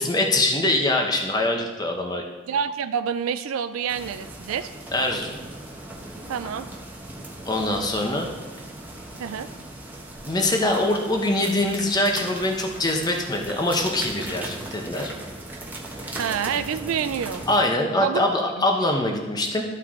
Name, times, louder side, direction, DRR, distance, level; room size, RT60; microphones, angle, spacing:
voice 1, 0.0-2.2 4.9-5.3 7.5-8.3 10.3-15.1 17.5-19.6, left 1 dB, 20° left, 2 dB, 0.9 m, -23 dB
voice 2, 2.5-4.7 6.3-6.7 9.2-9.5 16.1-17.4 18.0-18.6, right 7 dB, 80° right, 11 dB, 0.4 m, -28 dB
sound 1, 3.9-17.6, right 1 dB, 10° right, 1.0 m, -38 dB
13.5 x 4.4 x 3.7 m, 1.3 s
head